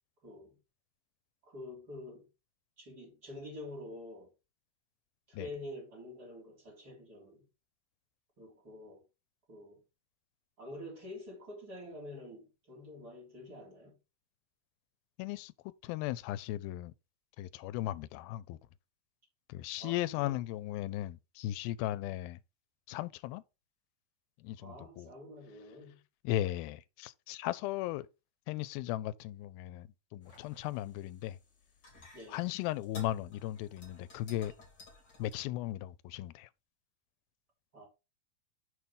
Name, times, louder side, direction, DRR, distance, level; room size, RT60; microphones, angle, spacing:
voice 1, 0.2-0.6 1.4-2.3 2.8-4.3 5.3-7.5 8.4-9.0 9.5-9.8 10.6-14.0 19.8-20.4 24.6-26.0 32.1-32.4 37.7-37.9, left 1 dB, 25° right, 3.7 m, -47 dB
voice 2, 15.2-15.5 15.8-16.9 17.4-18.6 19.5-22.4 22.9-23.4 24.4-25.1 26.2-28.1 28.5-31.4 32.3-34.5 35.2-36.5, left 14 dB, 85° left, 2.4 m, -37 dB
sound 1, 30.2-35.3, left 2 dB, 30° left, 2.9 m, -55 dB
6.6 x 4.5 x 5.4 m
omnidirectional pair, 4.3 m